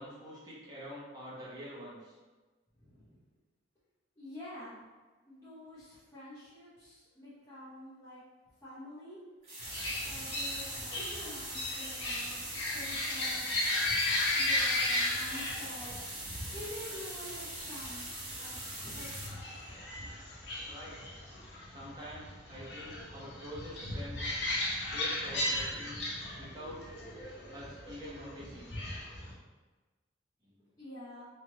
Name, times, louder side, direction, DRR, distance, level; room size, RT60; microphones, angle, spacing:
voice 1, 0.0-2.2 20.6-21.2 21.7-24.3 24.8-26.1 26.4-26.8 27.5-28.7 30.4-30.6, equal, 20° right, -8 dB, 0.8 m, -46 dB
voice 2, 2.8-3.2 4.2-4.8 5.2-8.2 8.6-9.3 9.6-9.7 10.0-13.7 14.3-16.0 16.5-18.6 18.8-19.7 30.8-31.3, left 1 dB, 15° left, -13 dB, 0.8 m, -48 dB
sound 1, 9.4-19.3, right 1 dB, 35° right, 1.3 m, -42 dB
sound 2, 9.6-29.3, left 1 dB, 60° left, 0.7 m, -36 dB
3.2 x 2.4 x 2.8 m, 1.3 s
head